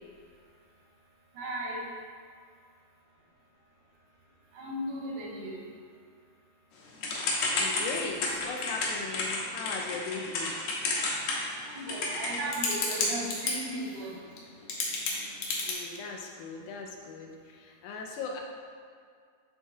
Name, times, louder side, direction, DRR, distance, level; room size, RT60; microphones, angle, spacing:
voice 1, 1.3-1.8 4.5-5.7 11.7-14.2, right 1 dB, 90° right, -4 dB, 2.7 m, -36 dB
Typing / Telephone, 7.0-13.5 14.4-14.5 14.7-15.7, left 3 dB, 70° left, 2.1 m, -30 dB
voice 2, 7.5-10.6 15.7-18.4, left 4 dB, 85° left, 1 dB, 2.2 m, -38 dB
10.5 x 3.5 x 2.8 m, 2.1 s
omnidirectional pair, 3.4 m